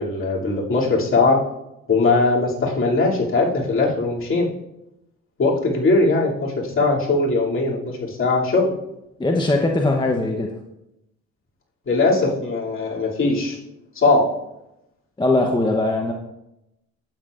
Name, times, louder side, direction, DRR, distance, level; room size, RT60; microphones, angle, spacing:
voice 1, 0.0-1.4 1.9-4.5 5.4-8.7 11.9-13.6 13.9-14.2, left 3 dB, 45° left, -4 dB, 2.8 m, -20 dB
voice 2, 9.2-10.5 15.2-16.1, left 2 dB, 15° left, 1 dB, 0.9 m, -20 dB
12.0 x 8.5 x 2.5 m, 0.87 s
cardioid pair, 90°, 30 cm